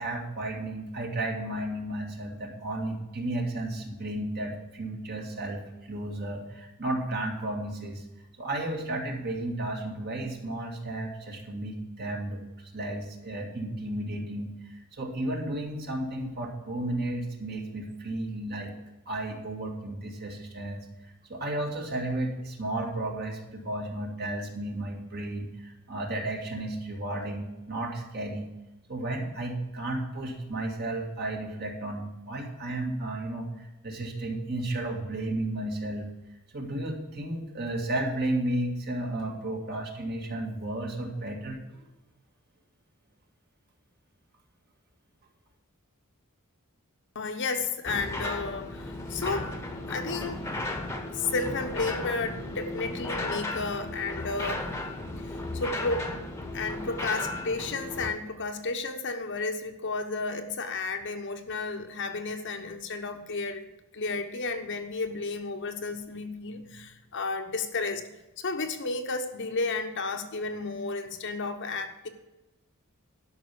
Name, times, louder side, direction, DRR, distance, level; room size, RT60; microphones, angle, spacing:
voice 1, 0.0-8.0 8.4-12.4 12.7-14.5 14.9-18.7 19.1-28.5 28.9-36.1 36.5-41.8, right 1 dB, 45° right, 1 dB, 2.1 m, -33 dB
voice 2, 47.1-49.5 49.9-50.4 51.1-54.7 55.3-56.1 56.5-63.7 63.9-68.0 68.4-72.1, left 3 dB, 55° left, 6 dB, 1.0 m, -32 dB
sound 1, 47.9-58.1, left 2 dB, 15° left, 1.1 m, -35 dB
12.0 x 5.8 x 6.8 m, 1.0 s
head